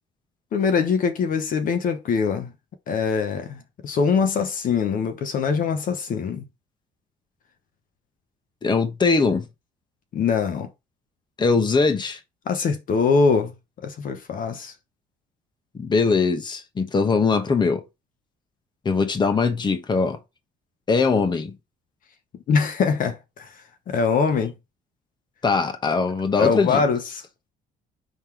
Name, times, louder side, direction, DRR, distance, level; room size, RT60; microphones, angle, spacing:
voice 1, 0.5-2.5 2.9-6.5 10.1-10.7 12.5-14.7 22.5-24.5 26.4-27.2, left 5 dB, 55° left, 1.1 m, -23 dB
voice 2, 8.6-9.5 11.4-12.2 15.7-17.8 18.8-20.2 20.9-21.6 25.4-26.8, left 4 dB, 25° left, 1.1 m, -21 dB
5.3 x 3.8 x 4.6 m
cardioid pair, 110°, 17 cm